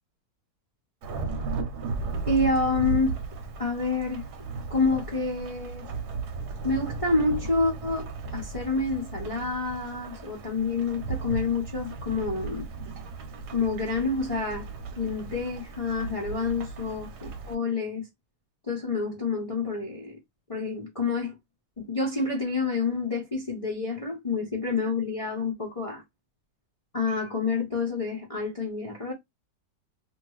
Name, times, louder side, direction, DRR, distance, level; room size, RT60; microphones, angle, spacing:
Thunderstorm / Rain, 1.0-17.5, right 4 dB, 65° right, 1.1 m, -36 dB
voice 1, 2.3-3.2 3.6-4.2 4.7-5.9 6.6-12.7 13.5-14.7 15.0-18.0 18.7-20.2 20.5-21.4 21.8-26.0 26.9-29.1, left 3 dB, 50° left, 0.4 m, -28 dB
2.9 x 2.7 x 3.0 m
omnidirectional pair, 2.1 m